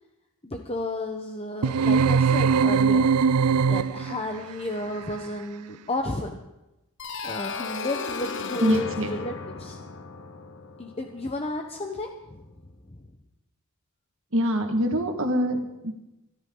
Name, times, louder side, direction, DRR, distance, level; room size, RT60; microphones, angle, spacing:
voice 1, 0.4-3.1 3.6-6.4 7.2-9.8 10.8-12.4 12.9-13.1, left 2 dB, 25° left, 3 dB, 1.0 m, -32 dB
sound 1, 1.6-4.3, right 5 dB, 85° right, 0.5 m, -21 dB
sound 2, 7.0-11.7, left 4 dB, 55° left, 1.1 m, -35 dB
voice 2, 8.6-9.1 14.3-15.9, equal, 60° right, 4 dB, 1.9 m, -24 dB
24.0 x 12.5 x 3.9 m, 0.98 s
head